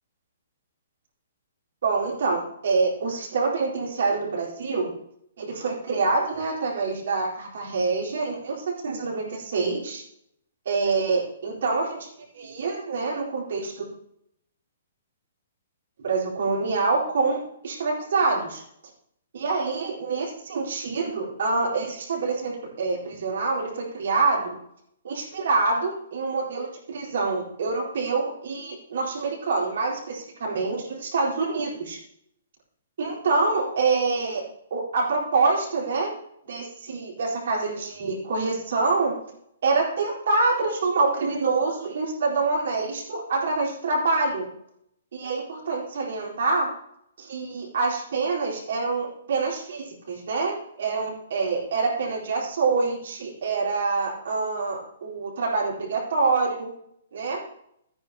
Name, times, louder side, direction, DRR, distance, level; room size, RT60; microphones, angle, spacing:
voice 1, 1.8-4.9 5.4-10.0 10.6-12.1 12.3-13.9 16.0-18.6 19.3-24.6 25.0-32.0 33.0-34.4 34.7-36.1 36.4-39.1 39.6-44.5 45.1-46.7 47.2-56.7 57.1-57.4, right 3 dB, 65° right, -3 dB, 4.2 m, -26 dB
13.5 x 9.9 x 3.0 m, 0.73 s
figure-of-eight pair, 125°, 0 cm